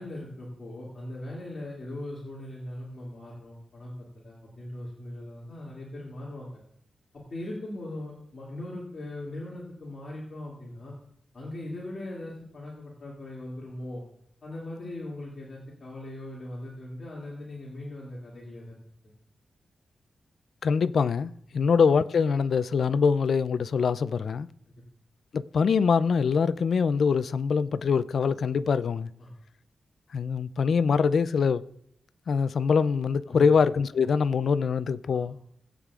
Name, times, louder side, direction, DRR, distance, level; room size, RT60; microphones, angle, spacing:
voice 1, 0.0-6.5 7.3-10.9 11.3-14.0 14.4-18.8 21.5-21.6 29.2-29.3 33.3-33.5 35.1-35.5, left 1 dB, 45° left, 2.4 m, -39 dB
voice 2, 20.6-24.5 25.3-29.1 30.1-31.6 32.3-35.4, left 5 dB, 65° left, 0.4 m, -24 dB
19.5 x 8.3 x 2.4 m
wide cardioid pair, 130°, 0 cm